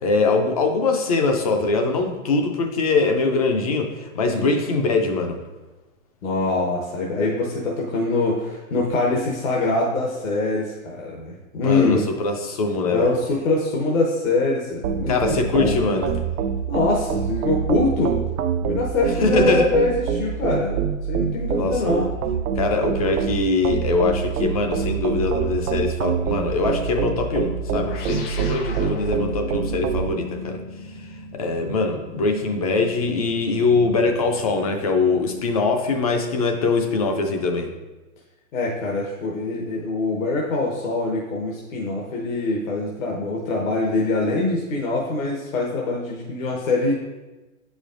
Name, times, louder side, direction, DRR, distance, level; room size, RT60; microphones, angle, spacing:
voice 1, 0.0-5.4 11.6-13.1 15.1-16.2 19.2-19.7 21.6-22.1 22.6-30.6 31.3-37.7, left 3 dB, 30° left, 4 dB, 0.4 m, -22 dB
voice 2, 6.2-12.1 12.9-16.0 16.7-18.2 18.6-22.1 38.5-46.9, left 2 dB, 70° left, -2 dB, 1.2 m, -24 dB
sound 1, 14.8-30.1, right 7 dB, 85° right, 0.6 m, -26 dB
sound 2, 27.7-36.5, left 2 dB, 45° left, 0.8 m, -38 dB
8.2 x 5.0 x 2.5 m, 1.1 s
hypercardioid pair, 150°, 42 cm